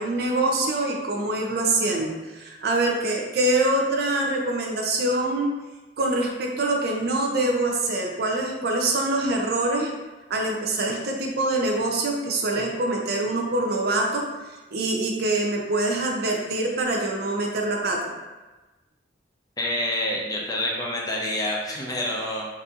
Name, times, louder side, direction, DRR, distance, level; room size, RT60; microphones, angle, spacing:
voice 1, 0.0-5.5 6.0-9.9 10.3-14.2 14.7-18.1, right 2 dB, 60° right, 0 dB, 0.5 m, -24 dB
voice 2, 19.6-22.5, left 1 dB, 20° left, -2 dB, 0.5 m, -27 dB
4.1 x 2.6 x 2.4 m, 1.1 s
head